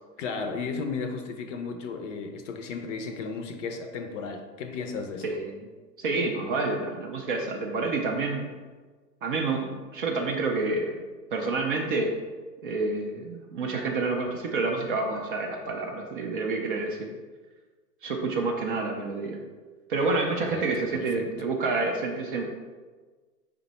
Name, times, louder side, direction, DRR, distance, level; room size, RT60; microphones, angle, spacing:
voice 1, 0.2-5.2 20.4-20.7 20.9-21.3, left 4 dB, 50° left, 6 dB, 0.6 m, -34 dB
voice 2, 5.2-5.6 6.0-8.5 9.2-10.9 11.3-12.2 12.6-17.1 18.0-19.4 19.9-22.4, right 3 dB, 35° right, 1 dB, 0.4 m, -28 dB
5.1 x 2.2 x 4.0 m, 1.4 s
hypercardioid pair, 115°, 49 cm